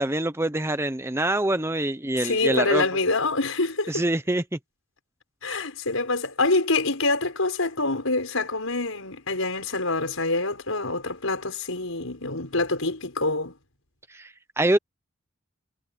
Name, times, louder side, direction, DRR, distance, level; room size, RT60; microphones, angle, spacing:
voice 1, 0.0-2.9 3.9-4.6 14.1-14.8, right 1 dB, 10° right, 0.9 m, -25 dB
voice 2, 2.2-4.0 5.4-13.5, left 3 dB, 90° left, 6.1 m, -26 dB
head